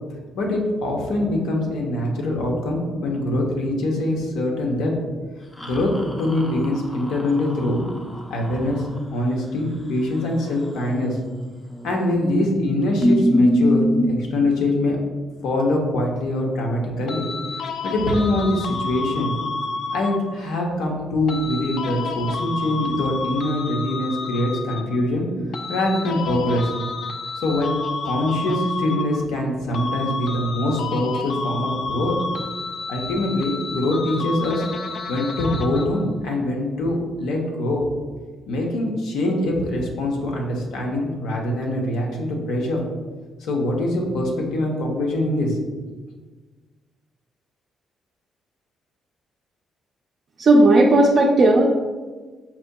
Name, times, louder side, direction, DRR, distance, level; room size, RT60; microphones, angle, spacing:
voice 1, 0.3-4.9 5.6-5.9 6.2-7.8 8.3-8.8 9.1-11.2 11.8-13.8 14.1-15.0 15.4-17.3 17.8-19.3 19.9-25.2 25.7-26.7 27.4-27.8 28.0-32.1 32.9-34.6 35.1-37.9 38.5-42.8 43.4-45.6, left 1 dB, 90° left, 0 dB, 0.7 m, -23 dB
sound 1, 5.6-9.0 11.7-12.2 12.5-12.6 13.0-14.1, equal, 15° left, 0.5 m, -23 dB
sound 2, 17.1-20.4 21.3-25.1 25.5-29.5 29.7-36.1, left 4 dB, 65° left, 0.3 m, -30 dB
voice 2, 50.4-51.7, right 2 dB, 55° right, -2 dB, 0.4 m, -14 dB
5.7 x 2.7 x 2.2 m, 1.3 s
cardioid pair, 90°, 0 cm